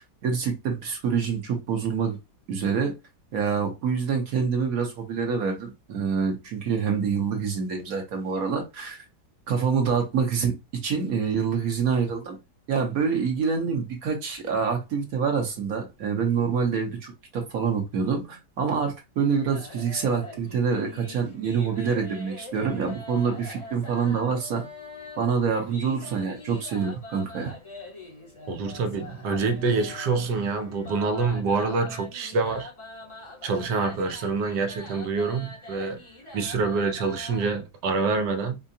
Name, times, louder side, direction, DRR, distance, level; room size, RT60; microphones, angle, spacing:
voice 1, 0.2-2.2 2.5-2.9 3.3-9.0 9.5-12.4 12.7-24.6 25.2-27.5, right 6 dB, 60° right, 1.3 m, -26 dB
sound 1, 19.2-37.5, left 2 dB, 25° left, 0.7 m, -43 dB
voice 2, 28.5-32.7 33.4-36.0 36.3-38.6, right 4 dB, 85° right, 1.4 m, -26 dB
4.6 x 2.2 x 2.6 m
omnidirectional pair, 1.8 m